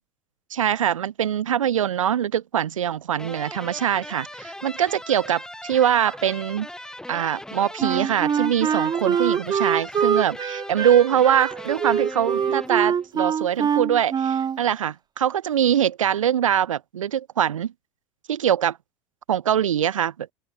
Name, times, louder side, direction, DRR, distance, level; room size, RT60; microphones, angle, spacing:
voice 1, 0.5-6.7 7.1-17.7 18.3-18.8 19.3-20.1, right 10 dB, 80° right, 0.6 m, -23 dB
sound 1, 3.1-13.1, left 1 dB, 5° left, 1.4 m, -39 dB
Wind instrument woodwind instrument, 7.8-14.6, right 7 dB, 25° right, 0.7 m, -24 dB
open air
figure-of-eight pair, 75°, 17 cm